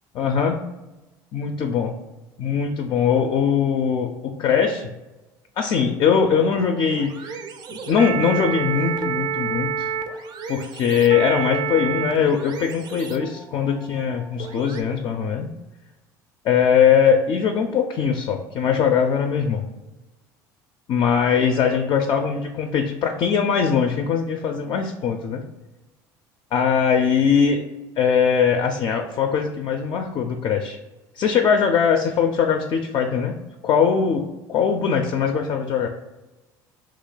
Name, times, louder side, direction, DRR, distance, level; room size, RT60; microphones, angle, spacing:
voice 1, 0.2-0.6 1.3-1.9 2.4-4.9 5.6-7.4 7.7-9.9 10.5-15.5 16.4-19.6 20.9-25.4 26.5-27.6 28.0-30.8 31.2-33.4 33.6-35.9, left 7 dB, 50° left, 4 dB, 0.4 m, -21 dB
sound 1, 6.2-14.8, right 7 dB, 50° right, 0.4 m, -30 dB
2.9 x 2.2 x 3.8 m, 1.0 s
supercardioid pair, 80°, 10 cm